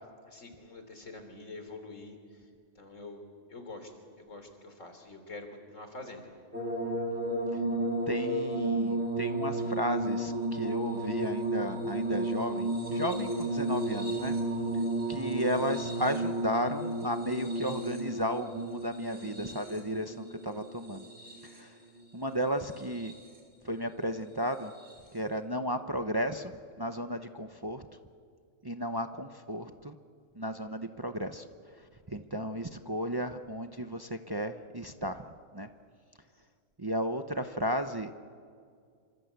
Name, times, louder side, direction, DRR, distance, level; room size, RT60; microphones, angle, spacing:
voice 1, 0.3-2.2 2.8-3.2 3.5-3.9 4.2-6.3, left 2 dB, 80° left, 6 dB, 3.8 m, -45 dB
sound 1, 6.5-21.8 22.6-23.4 24.8-24.9, right 1 dB, 90° right, 4.8 m, -33 dB
voice 2, 8.1-14.3 15.1-21.1 21.5-21.7 22.1-23.1 23.6-24.7 25.1-26.5 26.8-27.8 28.6-29.9 30.3-31.4 32.1-35.2 35.5-35.7 36.8-38.1, equal, 20° right, 7 dB, 0.8 m, -34 dB
27.5 x 25.5 x 8.2 m, 2.2 s
omnidirectional pair, 1.3 m